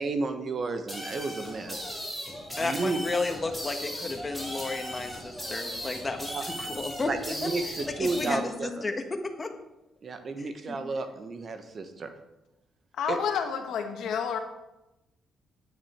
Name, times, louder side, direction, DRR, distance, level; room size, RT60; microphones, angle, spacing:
voice 1, 0.0-1.8 2.6-3.0 6.3-6.5 7.0-8.8 10.0-12.1 13.1-13.2, right 3 dB, 45° right, 8 dB, 1.2 m, -32 dB
sound 1, 0.9-8.3, equal, 5° right, 4.3 m, -37 dB
voice 2, 2.6-7.1 8.0-9.5 10.7-10.8, left 3 dB, 25° left, 5 dB, 1.5 m, -32 dB
voice 3, 13.0-14.4, left 7 dB, 75° left, 4 dB, 1.5 m, -29 dB
9.6 x 9.0 x 4.4 m, 0.95 s
cardioid pair, 90°, 0 cm